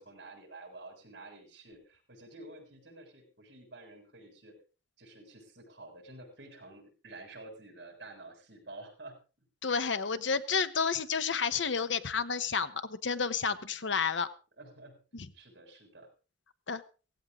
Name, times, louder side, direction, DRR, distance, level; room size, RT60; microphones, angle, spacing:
voice 1, 0.0-4.5 5.0-9.2 14.6-16.1, right 2 dB, 60° right, 2 dB, 7.0 m, -50 dB
voice 2, 9.6-14.3 15.1-15.3 16.7-16.8, left 5 dB, 75° left, 12 dB, 1.1 m, -30 dB
17.0 x 16.5 x 3.7 m, 0.35 s
head